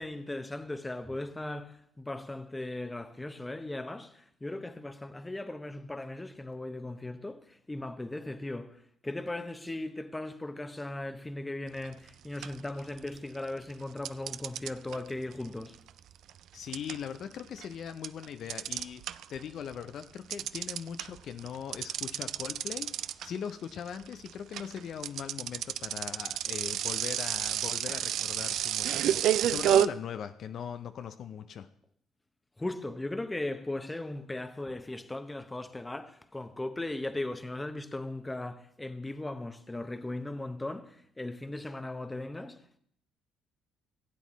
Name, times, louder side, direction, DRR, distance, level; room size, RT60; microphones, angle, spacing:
voice 1, 0.0-15.8 32.6-42.8, left 2 dB, 15° left, 0.8 m, -38 dB
sound 1, 11.8-12.1 12.4-13.4 14.1-19.4 19.7-29.9, right 11 dB, 70° right, 0.3 m, -30 dB
voice 2, 16.5-31.7, left 8 dB, 60° left, 0.4 m, -40 dB
16.0 x 8.3 x 3.1 m
supercardioid pair, 65°, 0 cm